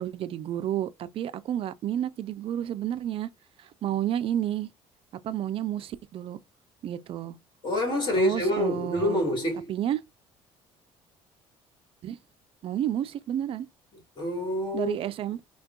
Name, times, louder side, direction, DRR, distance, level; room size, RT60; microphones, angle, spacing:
voice 1, 0.0-3.3 3.6-4.7 5.2-6.4 6.8-7.4 8.2-9.2 9.7-10.0 12.0-12.2 12.6-13.7 14.7-15.4, right 11 dB, 50° right, 0.4 m, -30 dB
voice 2, 7.6-9.7 14.2-14.9, equal, 40° left, 1.8 m, -26 dB
3.5 x 2.2 x 2.3 m
supercardioid pair, 85°, 12 cm